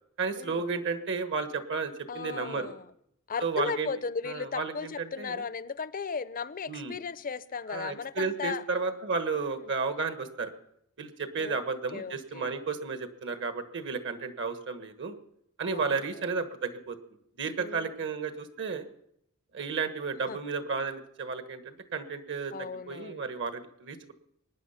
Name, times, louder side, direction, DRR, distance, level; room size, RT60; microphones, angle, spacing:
voice 1, 0.2-2.7 3.4-3.9 4.2-5.4 6.7-7.0 7.7-10.5 11.0-15.2 15.6-17.0 17.4-18.9 19.5-24.1, right 4 dB, 60° right, 1.4 m, -33 dB
voice 2, 2.1-2.9 3.3-8.6 9.4-9.7 11.4-11.6 11.9-12.5 15.7-16.3 17.6-17.9 20.3-20.4 22.5-23.2, left 5 dB, 40° left, 0.6 m, -36 dB
23.5 x 9.9 x 5.7 m
head